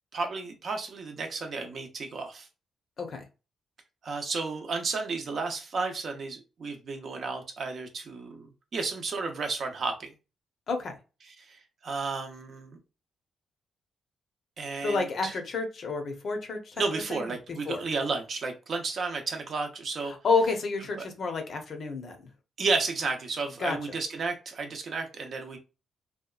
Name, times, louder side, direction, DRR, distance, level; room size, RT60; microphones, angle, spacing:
voice 1, 0.1-2.5 4.0-10.1 11.2-12.8 14.6-15.3 16.8-20.1 21.0-21.1 22.6-25.6, right 4 dB, 50° right, 4 dB, 0.6 m, -32 dB
voice 2, 10.7-11.0 14.8-17.3 17.7-17.8 20.1-22.2 23.6-23.8, left 4 dB, 50° left, 5 dB, 0.6 m, -30 dB
2.8 x 2.2 x 2.3 m, 0.30 s
cardioid pair, 125°, 0 cm